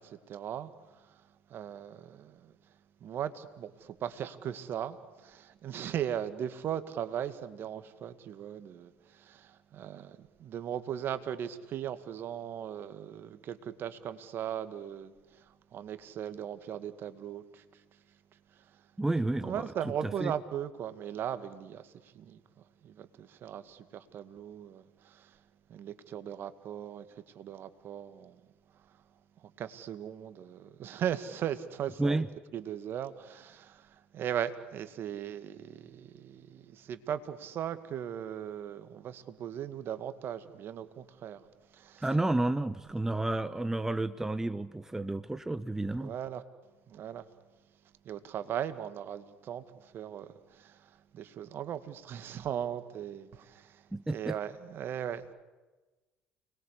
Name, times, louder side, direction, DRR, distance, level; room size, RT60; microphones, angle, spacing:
voice 1, 0.0-2.5 3.0-18.0 18.5-18.9 19.4-22.4 22.8-25.4 25.7-28.4 28.8-29.0 29.4-32.2 32.5-41.5 41.7-42.1 46.0-46.4 46.9-47.3 48.0-55.3, right 9 dB, 55° right, 2.2 m, -38 dB
voice 2, 19.0-19.6 20.0-20.3 32.0-32.3 42.0-46.1 53.9-54.4, right 2 dB, 10° right, 1.1 m, -31 dB
29.5 x 21.5 x 8.4 m
hypercardioid pair, 65°, 5 cm